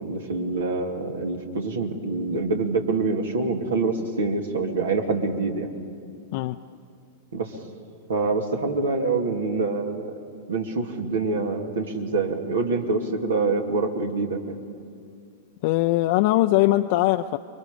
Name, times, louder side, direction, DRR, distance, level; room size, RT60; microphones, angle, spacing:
voice 1, 0.0-5.7 7.3-7.6 8.1-10.1 10.5-14.6, right 3 dB, 75° right, 3 dB, 2.6 m, -26 dB
voice 2, 15.6-17.4, left 16 dB, 55° left, 6 dB, 0.5 m, -21 dB
30.0 x 23.5 x 5.2 m, 2.3 s
hypercardioid pair, 100°, 0 cm